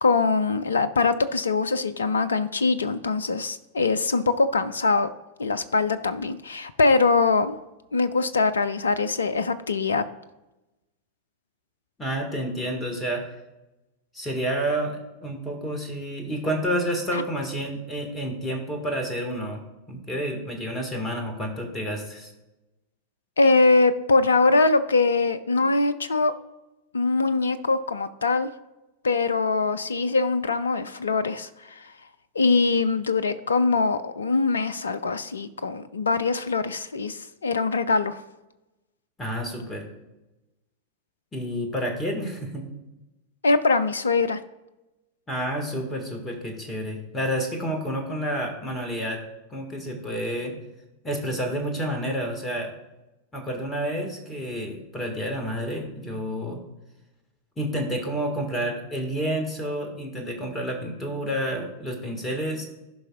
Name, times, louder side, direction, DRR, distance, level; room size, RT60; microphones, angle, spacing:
voice 1, 0.0-5.1 5.4-7.6 7.9-10.0 17.1-17.2 23.4-26.3 26.9-28.5 29.0-31.9 32.4-38.2 43.4-44.4, left 3 dB, 70° left, 13 dB, 0.4 m, -22 dB
voice 2, 12.0-13.2 14.1-19.6 19.9-22.3 39.2-39.8 41.3-42.7 45.3-49.2 49.5-50.6 51.0-52.7 53.3-56.6 57.6-62.7, equal, 15° left, 3 dB, 1.8 m, -29 dB
15.0 x 5.4 x 2.4 m, 0.99 s
figure-of-eight pair, 90°, 0 cm